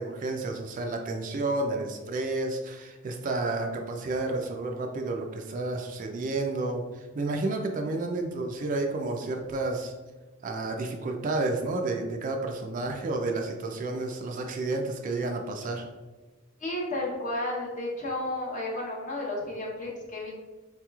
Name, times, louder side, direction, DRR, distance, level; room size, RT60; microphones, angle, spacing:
voice 1, 0.0-9.9 10.4-15.9, right 2 dB, 40° right, 3 dB, 0.3 m, -31 dB
voice 2, 16.6-20.3, left 1 dB, 35° left, -3 dB, 0.9 m, -32 dB
3.9 x 2.9 x 2.3 m, 1.3 s
head